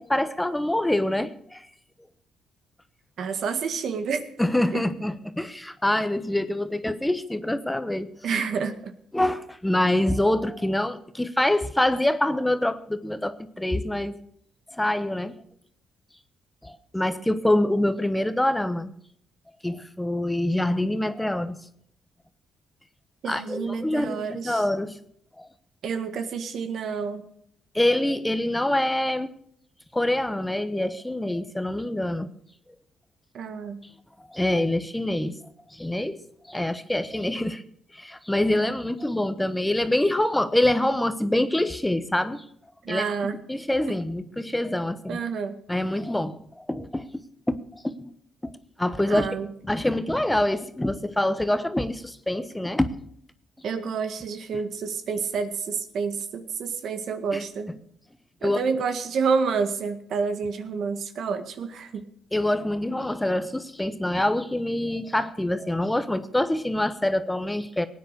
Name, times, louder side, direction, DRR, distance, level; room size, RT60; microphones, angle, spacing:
voice 1, 0.0-1.7 4.4-8.1 9.1-14.1 14.7-15.3 16.6-18.9 19.6-21.6 23.2-25.0 25.4-25.5 27.7-29.3 29.9-32.3 34.3-35.4 35.7-36.2 36.5-37.6 37.9-42.4 42.9-43.0 43.5-45.2 45.7-47.1 47.5-48.1 48.4-48.5 48.8-49.3 49.6-52.9 53.6-53.7 57.3-57.4 58.4-58.6 62.3-67.8, left 1 dB, 10° left, 11 dB, 1.1 m, -25 dB
voice 2, 3.2-4.2 4.7-4.8 8.2-8.9 23.2-24.6 25.8-27.3 33.3-33.8 42.8-43.4 45.1-45.5 49.1-49.5 53.6-57.7 58.4-62.0, right 5 dB, 65° right, 9 dB, 1.8 m, -29 dB
18.0 x 9.5 x 6.7 m, 0.67 s
cardioid pair, 90°, 0 cm